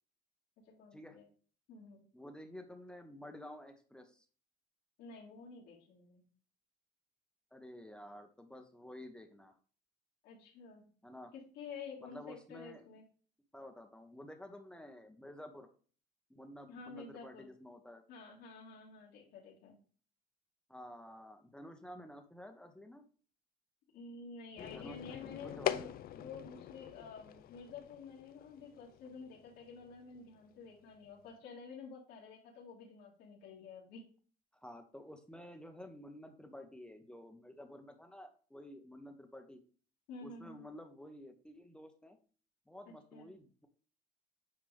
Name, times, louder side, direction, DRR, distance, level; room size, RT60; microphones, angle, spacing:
voice 1, 0.6-1.2 1.7-2.0 5.0-6.2 10.2-10.9 11.3-13.0 16.7-17.5 18.1-19.8 23.9-34.0 40.1-40.6 42.8-43.3, left 4 dB, 85° left, -5 dB, 2.3 m, -50 dB
voice 2, 2.1-4.2 7.5-9.5 11.0-11.3 12.0-12.9 13.5-15.7 16.3-18.0 20.7-23.0 24.6-25.9 34.6-39.6 40.2-42.2 42.7-43.7, left 1 dB, 5° left, 5 dB, 1.1 m, -51 dB
sound 1, 24.6-31.2, left 11 dB, 60° left, 0.6 m, -43 dB
9.3 x 4.8 x 3.5 m, 0.41 s
cardioid pair, 110°, 17 cm